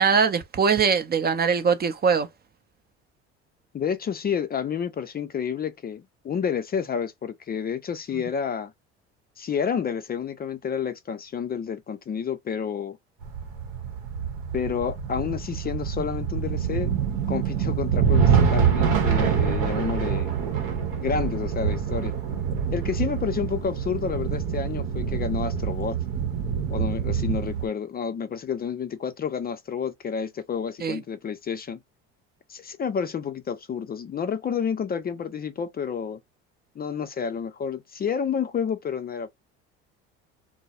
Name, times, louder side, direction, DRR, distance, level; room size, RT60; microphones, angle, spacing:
voice 1, 0.0-2.3 30.8-31.0, right 6 dB, 30° right, 0.5 m, -22 dB
voice 2, 3.7-8.7 9.4-13.0 14.5-16.9 17.3-20.3 20.9-22.1 22.7-26.0 26.7-31.8 32.5-36.2 36.8-39.3, left 7 dB, 30° left, 0.5 m, -30 dB
sound 1, 13.2-27.7, right 7 dB, 75° right, 0.8 m, -25 dB
2.2 x 2.0 x 2.8 m
hypercardioid pair, 70°, 32 cm